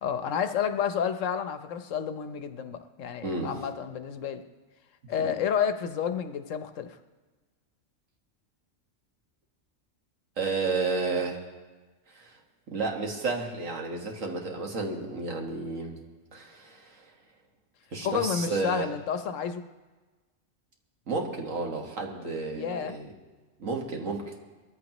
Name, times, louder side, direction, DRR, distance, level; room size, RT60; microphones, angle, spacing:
voice 1, 0.0-4.4 5.1-7.0 18.0-19.6 22.5-23.0, left 7 dB, 80° left, 9 dB, 1.2 m, -30 dB
voice 2, 3.2-3.5 5.2-5.3 10.4-11.4 12.1-12.4 12.7-16.0 16.3-17.1 17.9-18.9 21.1-23.1 23.6-24.3, right 3 dB, 85° right, 1 dB, 2.0 m, -32 dB
21.5 x 14.5 x 3.0 m, 1.3 s
omnidirectional pair, 1.3 m